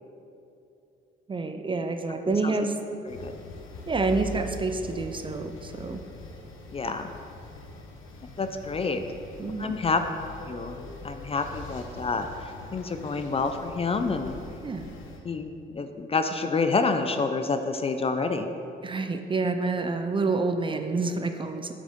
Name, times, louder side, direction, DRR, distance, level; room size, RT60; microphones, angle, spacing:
voice 1, 1.3-2.8 3.9-6.0 9.4-9.7 14.6-14.9 18.8-21.7, right 3 dB, 25° right, 7 dB, 0.4 m, -28 dB
sound 1, 3.1-15.2, left 2 dB, 80° left, 0.9 m, -42 dB
voice 2, 6.7-7.1 8.4-9.0 9.6-10.0 10.5-12.3 12.7-14.3 15.2-18.5, left 4 dB, 30° left, 8 dB, 0.4 m, -28 dB
7.6 x 6.2 x 3.6 m, 2.7 s
cardioid pair, 90°, 20 cm